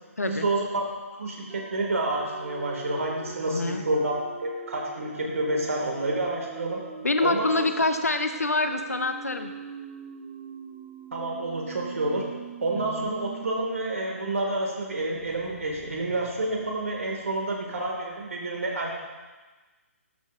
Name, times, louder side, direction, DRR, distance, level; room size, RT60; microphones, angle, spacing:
voice 1, 0.2-0.8 1.2-6.8 7.2-7.9 11.1-12.3 12.6-19.0, right 2 dB, 70° right, 0 dB, 1.9 m, -29 dB
sound 1, 1.5-14.0 14.3-14.4 14.8-17.5, right 8 dB, 25° right, 0.4 m, -43 dB
voice 2, 3.5-3.8 7.0-9.5 12.8-13.1, left 3 dB, 85° left, 8 dB, 0.6 m, -26 dB
13.0 x 5.5 x 2.5 m, 1.3 s
figure-of-eight pair, 140°, 8 cm